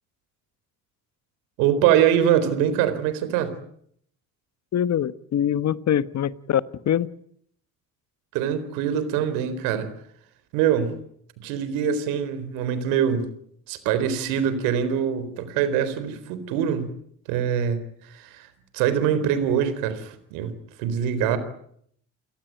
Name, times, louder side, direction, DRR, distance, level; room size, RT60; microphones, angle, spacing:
voice 1, 1.6-3.5 8.3-9.9 10.5-11.0 11.4-13.3 13.7-16.9 17.3-18.5 18.7-20.5 20.8-21.4, right 9 dB, 90° right, 13 dB, 4.1 m, -23 dB
voice 2, 4.7-7.1, left 10 dB, 55° left, 14 dB, 1.4 m, -24 dB
30.0 x 18.0 x 9.3 m, 0.67 s
supercardioid pair, 75°, 33 cm